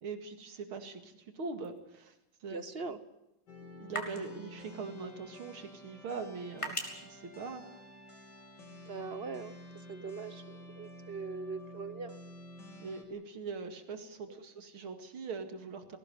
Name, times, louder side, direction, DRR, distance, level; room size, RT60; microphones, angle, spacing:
voice 1, 0.0-3.0 3.6-7.7 12.8-16.0, right 4 dB, 80° right, 8 dB, 3.0 m, -42 dB
sound 1, 1.6-8.3, equal, 15° left, 3.2 m, -46 dB
voice 2, 2.5-3.0 8.9-9.5 9.9-12.2 14.3-14.4, right 4 dB, 40° right, 13 dB, 0.9 m, -41 dB
sound 2, 3.5-13.0, left 1 dB, 55° left, 3.8 m, -51 dB
19.5 x 17.5 x 9.2 m, 0.94 s
omnidirectional pair, 2.3 m